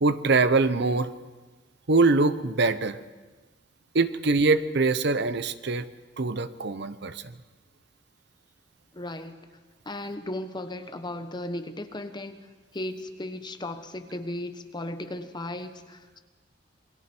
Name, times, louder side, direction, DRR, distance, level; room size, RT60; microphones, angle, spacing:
voice 1, 0.0-1.1 1.9-3.0 3.9-5.8 6.2-7.2, right 3 dB, 65° right, 12 dB, 0.9 m, -23 dB
voice 2, 8.9-9.4 9.8-16.2, left 1 dB, 25° left, 8 dB, 1.1 m, -36 dB
27.5 x 21.5 x 4.5 m, 1.3 s
head